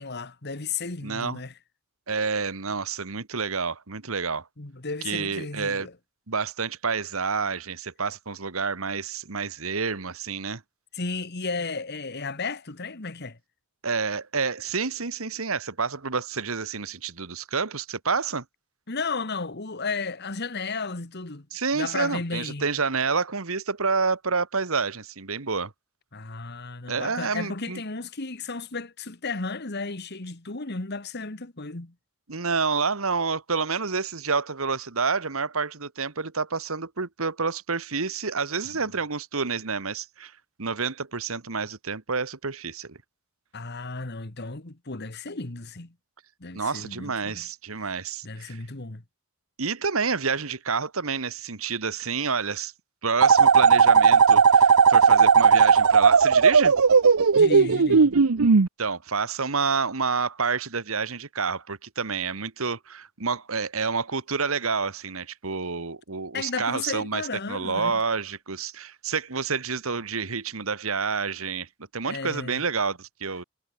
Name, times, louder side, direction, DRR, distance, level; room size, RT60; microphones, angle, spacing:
voice 1, 0.0-1.5 4.6-5.9 10.9-13.4 18.9-21.5 21.7-22.6 26.1-31.9 43.5-45.9 46.4-47.4 47.8-47.9 48.2-49.0 57.4-58.1 66.3-68.0 72.0-72.6, left 4 dB, 50° left, 1.7 m, -34 dB
voice 2, 1.0-1.4 2.1-4.5 5.0-5.9 6.3-10.6 13.8-18.4 21.5-25.7 26.9-27.8 32.3-40.3 40.6-43.0 46.5-48.6 49.6-52.7 53.0-56.8 58.8-67.2 67.5-71.7 71.9-73.4, right 5 dB, 75° right, 1.6 m, -28 dB
sound 1, 53.2-58.7, right 5 dB, 90° right, 0.8 m, -16 dB
head